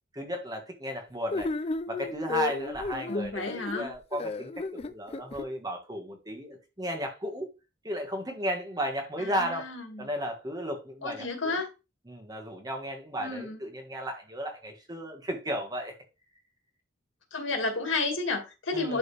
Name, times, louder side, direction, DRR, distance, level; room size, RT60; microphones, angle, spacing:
voice 1, 0.1-1.5 1.9-3.5 3.7-7.5 7.8-9.7 10.0-11.6 12.1-15.9 18.7-19.0, equal, 20° right, 1.7 m, -34 dB
sound 1, 1.3-5.5, left 3 dB, 30° left, 0.4 m, -33 dB
voice 2, 3.1-3.9 9.2-10.1 11.0-11.7 13.2-13.6 17.3-19.0, left 3 dB, 85° left, 2.3 m, -32 dB
11.5 x 3.9 x 3.4 m
head